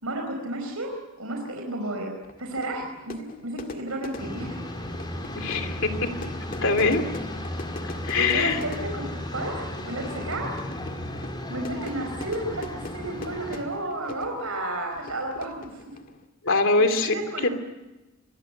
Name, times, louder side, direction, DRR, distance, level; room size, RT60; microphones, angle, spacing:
voice 1, 0.0-4.6 8.1-9.1 9.3-10.5 11.5-15.9 17.0-17.5, right 1 dB, 75° right, 3 dB, 4.7 m, -32 dB
Fire / Fireworks, 2.2-16.3, left 2 dB, 40° left, 1.9 m, -42 dB
sound 1, 4.2-13.6, left 1 dB, 20° left, 4.3 m, -35 dB
voice 2, 5.4-5.9 6.6-7.0 8.0-8.6 16.4-17.1 17.4-17.5, left 3 dB, 60° left, 7 dB, 2.8 m, -22 dB
27.0 x 22.5 x 7.9 m, 1.1 s
head